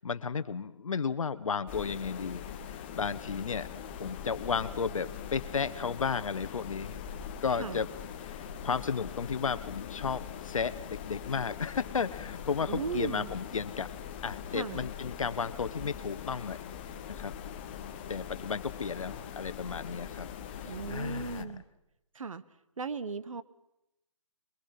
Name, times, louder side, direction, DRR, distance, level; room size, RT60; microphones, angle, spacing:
voice 1, 0.0-3.7 3.9-7.0 7.4-7.9 8.2-13.9 14.2-16.6 17.2-17.3 18.1-20.3 20.6-21.5, left 5 dB, 75° left, 12 dB, 1.0 m, -33 dB
sound 1, 1.7-21.4, left 8 dB, 20° left, 0.8 m, -42 dB
voice 2, 12.7-13.3 14.5-14.9 20.6-21.6 22.1-22.4 22.8-23.4, right 5 dB, 80° right, 15 dB, 1.1 m, -37 dB
23.0 x 22.5 x 5.8 m, 0.88 s
hypercardioid pair, 165°, 17 cm